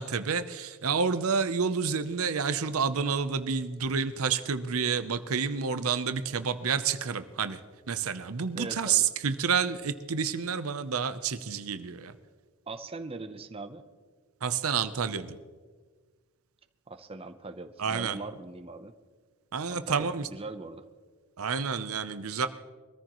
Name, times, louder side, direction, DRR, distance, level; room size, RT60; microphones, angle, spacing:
voice 1, 0.0-7.6 7.9-12.1 14.4-15.4 17.8-18.2 19.5-20.3 21.4-22.5, right 6 dB, 85° right, 11 dB, 0.7 m, -29 dB
voice 2, 8.5-9.1 12.7-13.8 16.9-18.9 19.7-20.8, right 3 dB, 25° right, 7 dB, 0.7 m, -41 dB
23.5 x 14.0 x 3.1 m, 1.5 s
head